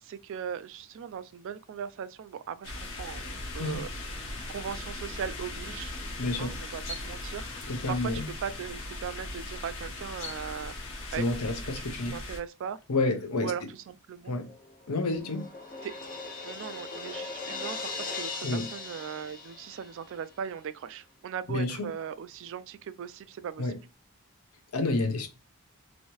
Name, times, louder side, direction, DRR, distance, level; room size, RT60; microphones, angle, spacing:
voice 1, 0.0-2.7 3.0-5.9 6.4-10.8 11.1-11.3 11.5-12.8 13.4-14.4 15.8-15.9 16.4-23.7, right 8 dB, 60° right, 0.3 m, -39 dB
sound 1, 2.6-12.4, left 2 dB, 60° left, 1.0 m, -39 dB
voice 2, 6.2-6.5 7.7-8.3 11.2-12.2 12.9-13.5 14.3-14.5 14.9-15.4 18.4-18.6 21.5-21.9 23.6-23.8 24.7-25.3, left 2 dB, 85° left, 0.7 m, -29 dB
Crash cymbal, 14.5-20.2, left 4 dB, 40° left, 0.6 m, -39 dB
3.1 x 2.7 x 2.9 m
head